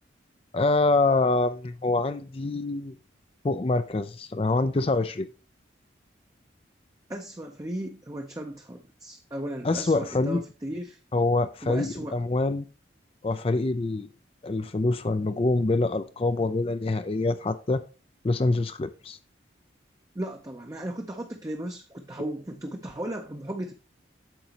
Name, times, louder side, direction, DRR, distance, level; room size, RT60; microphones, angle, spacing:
voice 1, 0.5-3.0 3.4-5.3 9.6-10.4 11.1-12.6 13.2-14.1 14.4-17.8 18.2-19.2, left 2 dB, 30° left, 0.4 m, -25 dB
voice 2, 7.1-11.0 11.6-12.2 20.1-23.7, right 1 dB, 20° right, 0.6 m, -36 dB
8.9 x 6.9 x 2.9 m
head